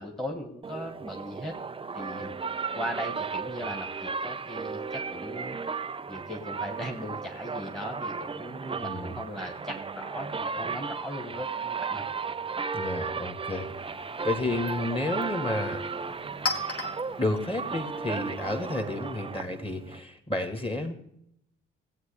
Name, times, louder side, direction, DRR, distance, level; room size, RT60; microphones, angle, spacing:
voice 1, 0.0-1.6 1.9-2.3 2.7-5.6 6.1-12.1, equal, ahead, 0 dB, 1.6 m, -38 dB
sound 1, 0.6-20.0, right 5 dB, 15° right, 0.4 m, -35 dB
voice 2, 8.8-9.2 12.7-13.7 14.2-15.8 17.2-20.9, left 2 dB, 15° left, 6 dB, 2.0 m, -31 dB
Chink clink, 13.5-19.0, left 3 dB, 45° left, 1.8 m, -40 dB
16.5 x 8.2 x 3.4 m, 0.75 s
hypercardioid pair, 45°, 33 cm